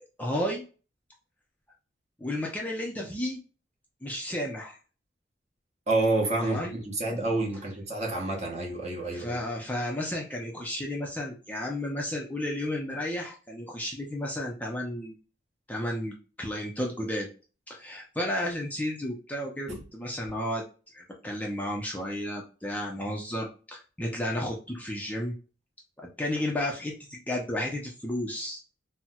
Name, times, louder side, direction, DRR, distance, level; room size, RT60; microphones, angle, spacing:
voice 1, 0.2-0.6 2.2-3.4 4.0-4.8 6.4-6.7 9.1-15.2 15.7-17.3 17.7-20.7 20.9-25.3 26.0-28.6, left 1 dB, 10° left, 0.4 m, -32 dB
voice 2, 5.9-9.4 19.7-19.8, right 2 dB, 35° right, 0.9 m, -28 dB
4.2 x 2.1 x 2.2 m
head